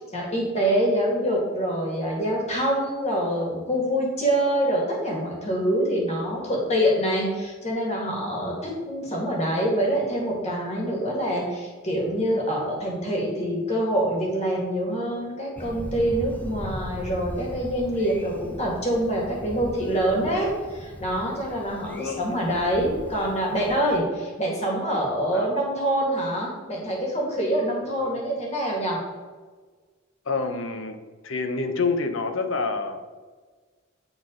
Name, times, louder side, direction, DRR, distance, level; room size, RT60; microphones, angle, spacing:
voice 1, 0.0-29.0, right 1 dB, 35° left, -2 dB, 1.8 m, -25 dB
Thunder, 15.6-24.0, equal, 10° left, 0.6 m, -39 dB
voice 2, 21.9-22.2 25.3-25.5 28.0-28.1 30.3-31.0 31.2-33.0, left 4 dB, 70° left, 7 dB, 0.7 m, -27 dB
8.9 x 4.0 x 3.8 m, 1.4 s
head